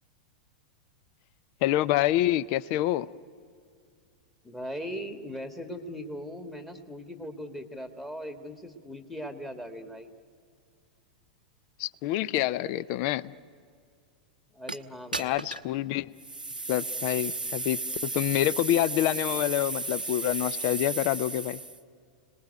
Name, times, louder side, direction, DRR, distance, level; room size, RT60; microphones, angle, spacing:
voice 1, 1.6-3.1 11.8-13.3 15.2-16.2 16.7-21.6, left 14 dB, 45° left, 0.6 m, -27 dB
voice 2, 4.4-10.1 14.5-15.3, equal, 5° left, 1.8 m, -39 dB
sound 1, 14.7-14.8 15.1-15.7 16.2-21.8, right 3 dB, 85° right, 0.8 m, -34 dB
30.0 x 19.5 x 9.3 m
figure-of-eight pair, 95°, 5 cm